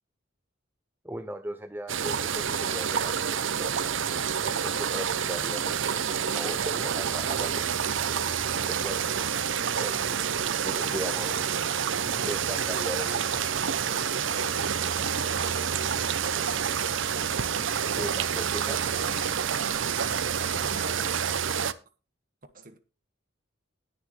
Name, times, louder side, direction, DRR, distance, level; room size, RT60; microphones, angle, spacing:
voice 1, 1.0-3.8 4.4-8.1 8.7-9.1 9.8-10.3 10.6-11.6 12.2-13.3 17.9-18.8, right 1 dB, 10° right, 0.5 m, -38 dB
sound 1, 1.9-21.7, right 7 dB, 70° right, 0.7 m, -28 dB
voice 2, 15.1-16.1 19.8-21.4 22.5-22.8, right 2 dB, 45° right, 1.6 m, -48 dB
20.0 x 6.7 x 3.2 m
head